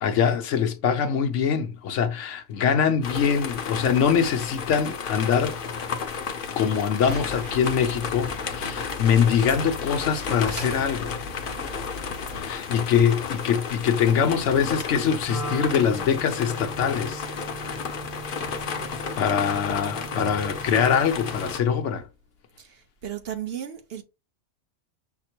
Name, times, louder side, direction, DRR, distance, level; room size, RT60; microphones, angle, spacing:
voice 1, 0.0-5.6 6.6-11.1 12.3-17.2 19.2-22.1, left 7 dB, 70° left, 1.0 m, -23 dB
sound 1, 3.0-21.6, left 5 dB, 50° left, 0.7 m, -33 dB
sound 2, 7.0-12.4, equal, 85° right, 2.3 m, -39 dB
Wind instrument woodwind instrument, 15.2-21.6, right 3 dB, 15° right, 0.7 m, -39 dB
voice 2, 22.6-24.0, right 10 dB, 60° right, 0.8 m, -35 dB
5.8 x 2.0 x 4.3 m
omnidirectional pair, 1.3 m